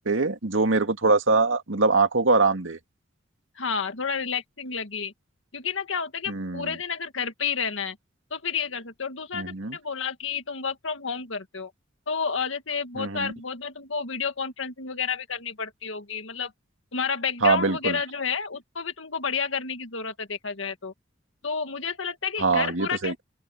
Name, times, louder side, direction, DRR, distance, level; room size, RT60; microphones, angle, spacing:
voice 1, 0.0-2.8 6.3-6.8 9.3-9.8 13.0-13.3 17.4-18.0 22.4-23.2, right 3 dB, 85° right, 2.1 m, -23 dB
voice 2, 3.6-5.1 5.5-8.0 8.3-11.7 12.1-16.5 16.9-20.9 21.4-23.2, left 6 dB, 85° left, 1.9 m, -30 dB
open air
head